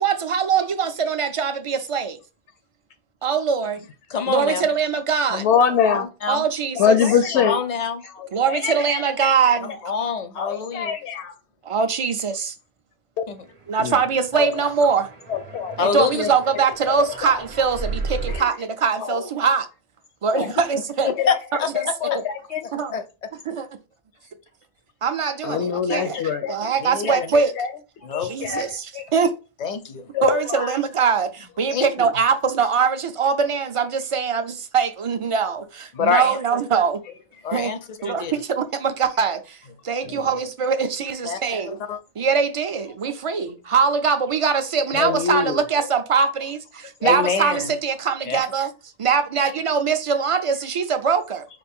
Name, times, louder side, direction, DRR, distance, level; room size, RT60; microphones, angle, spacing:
voice 1, 0.0-2.2 3.2-3.8 4.3-5.5 6.3-7.0 8.3-9.7 11.6-12.5 13.7-15.1 15.8-19.7 20.2-21.1 22.1-22.2 22.7-22.9 23.5-23.7 25.0-26.2 26.5-27.5 28.2-29.3 30.2-37.0 37.5-37.7 38.0-39.6 39.8-41.8 42.2-48.7 49.0-51.5, right 6 dB, 55° right, 0.3 m, -22 dB
voice 2, 4.1-4.6 5.9-6.5 7.3-8.0 9.6-11.0 13.3-13.5 15.8-16.3 20.4-20.5 21.0-22.2 22.9-23.0 26.8-27.3 28.0-28.3 29.6-30.1 31.7-32.1 35.9-36.4 37.4-37.8 38.0-38.3 41.2-41.4 41.7-42.0 47.0-47.7 48.2-48.4, left 6 dB, 50° left, 0.5 m, -26 dB
voice 3, 5.3-6.0 6.8-7.6 8.1-9.3 10.0-11.3 13.2-13.3 13.8-14.0 14.3-14.5 15.3-15.8 16.9-17.4 18.3-18.4 19.0-19.3 20.3-20.5 21.2-21.3 21.7-22.6 25.4-26.7 27.0-27.7 28.0-29.1 30.1-30.7 40.0-40.3 44.9-45.6, left 7 dB, 85° left, 0.9 m, -24 dB
sound 1, 13.9-18.4, right 3 dB, 35° right, 0.7 m, -34 dB
5.0 x 2.5 x 3.5 m
omnidirectional pair, 1.1 m